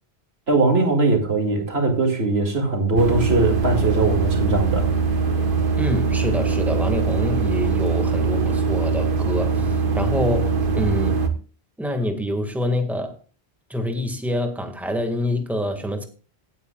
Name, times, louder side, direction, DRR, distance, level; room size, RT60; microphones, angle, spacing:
voice 1, 0.5-4.9, right 3 dB, 90° right, 3 dB, 2.6 m, -20 dB
sound 1, 3.0-11.3, right 4 dB, 60° right, 1.4 m, -22 dB
voice 2, 5.8-11.2 11.8-13.2 13.7-16.1, left 1 dB, ahead, 4 dB, 1.8 m, -26 dB
17.0 x 9.2 x 2.3 m, 0.36 s
omnidirectional pair, 1.0 m